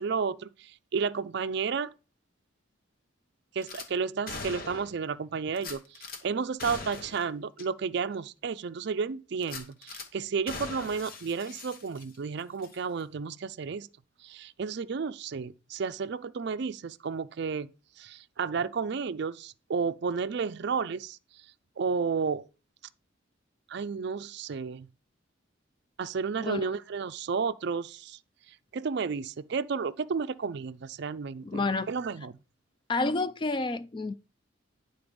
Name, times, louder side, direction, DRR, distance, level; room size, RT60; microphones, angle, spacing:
voice 1, 0.0-1.9 3.5-13.9 14.2-17.7 18.0-21.2 21.8-22.4 23.7-24.9 26.0-28.2 28.7-31.6 31.9-32.4, right 5 dB, 55° right, 0.4 m, -32 dB
Gunshot gunfire / Glass, 3.6-3.9 4.3-5.0 5.6-6.2 6.6-7.3 7.6-7.7 8.1-8.2 9.4-10.1 10.5-12.3 12.6-12.8, left 3 dB, 45° left, 1.1 m, -41 dB
voice 2, 31.4-31.9 32.9-34.1, left 3 dB, 25° left, 0.3 m, -29 dB
9.9 x 3.9 x 5.2 m
head